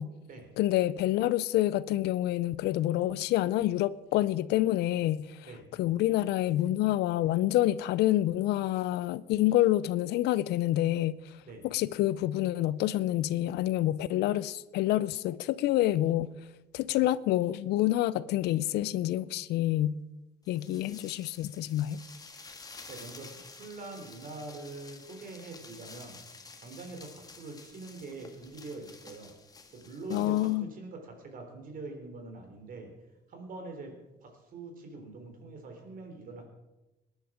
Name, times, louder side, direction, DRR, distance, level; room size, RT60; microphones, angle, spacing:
voice 1, 0.6-5.4 5.8-11.2 11.6-16.3 16.7-20.0 20.5-22.0 30.1-30.7, left 14 dB, 80° left, 0.6 m, -27 dB
sound 1, 20.5-30.6, left 4 dB, 20° left, 1.7 m, -51 dB
voice 2, 22.9-26.2 26.6-29.3 29.7-32.9 33.3-33.9 34.2-36.5, right 3 dB, 55° right, 3.7 m, -44 dB
19.0 x 10.5 x 5.0 m
cardioid pair, 110°, 17 cm